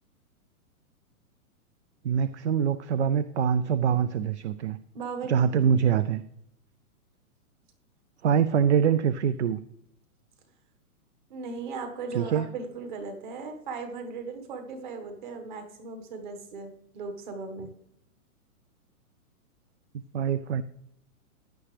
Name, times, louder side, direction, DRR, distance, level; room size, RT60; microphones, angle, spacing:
voice 1, 2.0-4.8 5.3-6.2 8.2-9.6 12.1-12.5 20.1-20.6, right 8 dB, 50° right, 15 dB, 0.5 m, -24 dB
voice 2, 4.9-6.0 11.3-17.7, right 4 dB, 35° right, 5 dB, 1.5 m, -38 dB
15.5 x 10.0 x 3.3 m, 0.76 s
hypercardioid pair, 175°, 44 cm